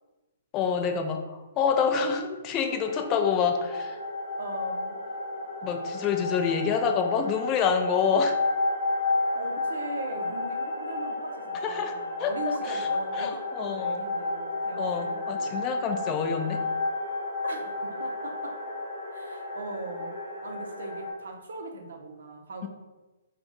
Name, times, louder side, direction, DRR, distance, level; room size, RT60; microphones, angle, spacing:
voice 1, 0.5-1.2 1.6-4.0 5.6-8.4 11.6-11.9 12.2-12.3 12.7-12.9 13.2-14.0 14.8-16.6, left 6 dB, 25° left, 5 dB, 0.4 m, -27 dB
sound 1, 2.8-21.1, left 2 dB, 65° left, 1.2 m, -32 dB
voice 2, 4.4-5.0 9.3-15.5 17.4-18.6 19.1-22.7, right 2 dB, 65° right, 3 dB, 0.6 m, -40 dB
3.5 x 2.3 x 3.9 m, 1.2 s
figure-of-eight pair, 125°, 0 cm